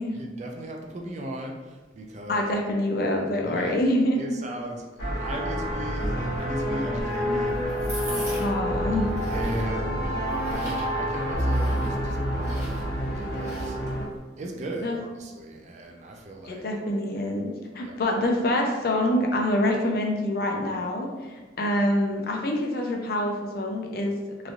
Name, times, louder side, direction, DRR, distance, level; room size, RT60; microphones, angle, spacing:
voice 1, 0.1-2.5 3.4-3.8 4.2-8.5 9.3-13.8 14.4-16.6 17.8-18.0, right 1 dB, 40° right, 1 dB, 0.4 m, -38 dB
voice 2, 2.3-4.2 8.4-9.1 14.8-15.0 16.4-21.1 21.6-24.2, left 1 dB, 55° left, 1 dB, 0.4 m, -25 dB
sound 1, 5.0-14.0, equal, 80° left, 0.9 m, -28 dB
sound 2, 6.7-14.2, right 1 dB, 15° right, 0.9 m, -41 dB
3.0 x 2.5 x 2.5 m, 1.3 s
head